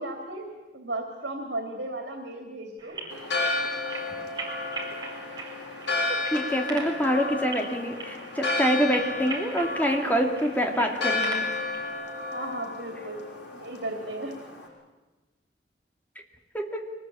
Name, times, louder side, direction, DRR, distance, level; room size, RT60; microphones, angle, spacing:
voice 1, 0.0-3.0 12.3-13.2 13.5-14.3, right 1 dB, 85° right, 3 dB, 2.8 m, -35 dB
sound 1, 2.8-11.9, right 3 dB, 25° right, 4.5 m, -40 dB
Church bell, 3.1-14.7, left 2 dB, 80° left, 6.3 m, -32 dB
voice 2, 6.3-11.5 16.5-16.9, equal, 10° left, 3 dB, 2.3 m, -26 dB
23.5 x 19.5 x 8.6 m, 1.2 s
head